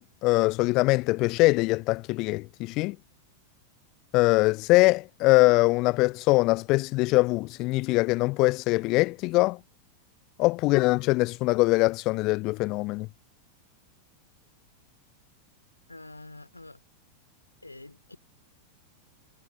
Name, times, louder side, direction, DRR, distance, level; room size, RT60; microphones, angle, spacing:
voice 1, 0.0-3.0 4.1-9.6 10.4-13.1, left 22 dB, 40° left, 0.4 m, -23 dB
voice 2, 15.9-16.8 17.6-18.2, left 2 dB, 85° left, 2.9 m, -46 dB
figure-of-eight pair, 90°, 0 cm